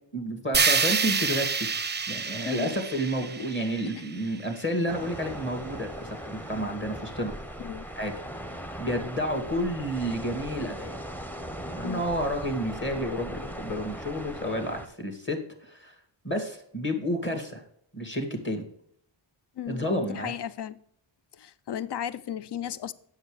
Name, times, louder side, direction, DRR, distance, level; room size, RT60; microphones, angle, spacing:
voice 1, 0.1-1.7 2.1-7.3 8.0-8.2 8.8-11.0 11.7-16.0 16.2-17.6 17.9-18.6 19.7-20.4, equal, 25° left, 2.0 m, -30 dB
sound 1, 0.5-4.6, right 5 dB, 20° right, 0.5 m, -28 dB
sound 2, 4.9-14.9, right 1 dB, 5° left, 0.8 m, -39 dB
voice 2, 19.6-20.8 21.4-22.9, left 10 dB, 60° left, 0.6 m, -35 dB
7.9 x 6.3 x 4.9 m
cardioid pair, 60°, 47 cm